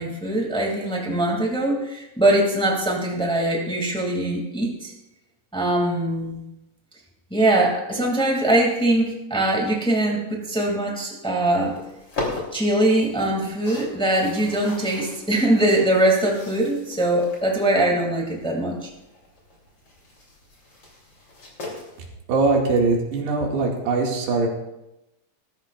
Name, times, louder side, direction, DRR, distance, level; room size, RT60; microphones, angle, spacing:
voice 1, 0.0-4.9 5.5-6.4 7.3-11.7 12.5-18.9, right 1 dB, ahead, -1 dB, 1.2 m, -22 dB
sound 1, 11.4-22.1, left 2 dB, 30° left, 3.5 m, -39 dB
voice 2, 22.3-24.5, right 3 dB, 80° right, -1 dB, 4.2 m, -21 dB
20.0 x 13.5 x 2.5 m, 0.92 s
omnidirectional pair, 4.8 m